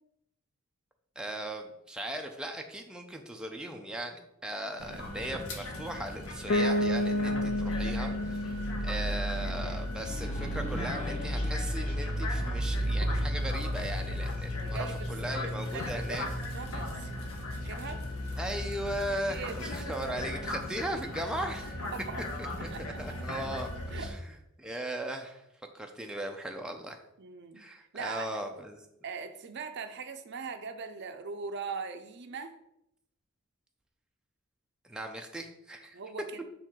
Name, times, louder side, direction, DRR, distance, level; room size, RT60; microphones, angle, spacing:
voice 1, 1.2-8.6 8.8-16.3 18.4-21.8 22.6-24.2 24.6-25.5 25.7-27.0 27.6-28.9 34.8-36.0, right 1 dB, 5° right, 3 dB, 0.5 m, -38 dB
sound 1, 4.8-24.1, equal, 75° left, 1.2 m, -35 dB
sound 2, 5.0-8.0 8.4-8.5 9.9-15.0, left 1 dB, 35° left, 0.8 m, -45 dB
Bass guitar, 6.5-10.4, left 1 dB, 60° left, 0.4 m, -31 dB
voice 2, 14.5-17.1 17.6-18.0 19.3-19.7 21.9-22.3 22.6-23.2 23.9-24.1 27.2-27.6 27.9-28.3 29.0-32.5 35.9-36.4, right 5 dB, 50° right, 8 dB, 0.5 m, -41 dB
6.2 x 3.7 x 4.5 m, 0.81 s
head